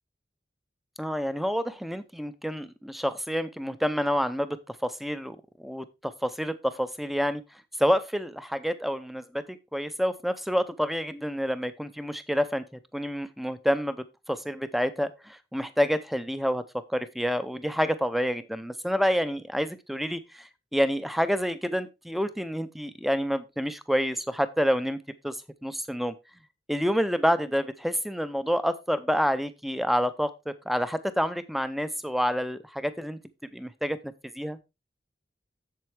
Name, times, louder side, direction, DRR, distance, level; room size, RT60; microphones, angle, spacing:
voice 1, 1.0-7.4 7.8-25.0 25.2-25.4 25.6-26.1 26.7-33.2 33.5-34.6, equal, ahead, 13 dB, 0.5 m, -28 dB
7.6 x 7.3 x 3.4 m, 0.24 s
head